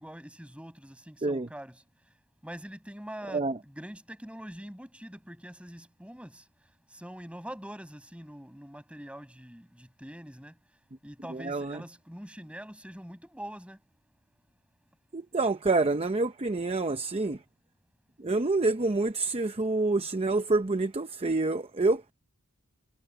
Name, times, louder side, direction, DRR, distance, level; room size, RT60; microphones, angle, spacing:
voice 1, 0.0-1.8 2.4-6.4 6.9-10.6 11.0-13.8, equal, 5° right, 6.3 m, -44 dB
voice 2, 3.3-3.6 11.3-11.8 15.1-17.4 18.2-22.1, right 3 dB, 25° right, 0.7 m, -27 dB
head